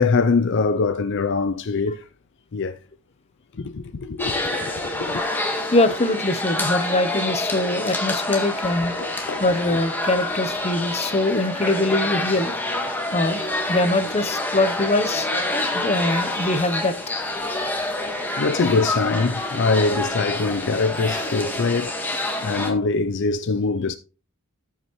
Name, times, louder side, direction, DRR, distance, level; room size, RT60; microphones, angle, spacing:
voice 1, 0.0-2.0 2.5-2.8 3.6-5.2 5.6-5.7 9.0-9.4 18.4-24.0, left 4 dB, 55° left, 0.5 m, -23 dB
sound 1, 4.2-22.7, left 2 dB, 10° left, 1.5 m, -27 dB
voice 2, 5.2-8.9 9.4-13.4 13.7-17.0 17.8-18.2 21.5-21.6, left 2 dB, 30° left, 0.8 m, -23 dB
13.5 x 5.8 x 3.1 m
head